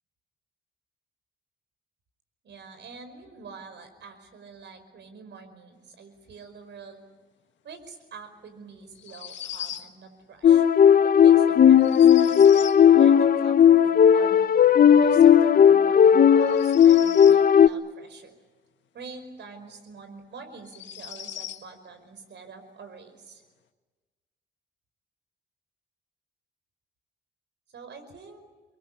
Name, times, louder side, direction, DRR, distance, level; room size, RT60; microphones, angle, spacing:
voice 1, 2.4-7.0 7.6-10.6 11.0-14.5 15.0-18.3 18.9-23.4 27.7-28.4, right 4 dB, 65° right, 9 dB, 5.2 m, -45 dB
sound 1, 9.0-9.9 11.8-12.8 16.4-17.4 19.6-19.7 20.6-21.6, left 10 dB, 70° left, 1.5 m, -39 dB
sound 2, 10.4-17.7, left 8 dB, 45° left, 0.7 m, -16 dB
25.0 x 22.5 x 8.6 m, 1.3 s
cardioid pair, 90°, 20 cm